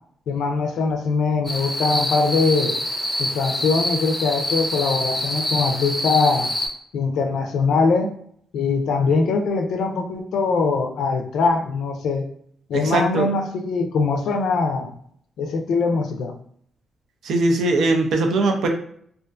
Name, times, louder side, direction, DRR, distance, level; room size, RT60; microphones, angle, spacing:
voice 1, 0.3-2.7 3.2-6.5 6.9-8.1 8.5-12.2 12.7-14.9 15.4-16.3, left 4 dB, 80° left, 4 dB, 0.4 m, -22 dB
sound 1, 1.4-6.7, left 1 dB, 15° left, 0.6 m, -26 dB
voice 2, 12.7-13.3 17.2-18.7, right 2 dB, 70° right, 4 dB, 0.4 m, -20 dB
2.4 x 2.3 x 2.4 m, 0.63 s
cardioid pair, 115°, 0 cm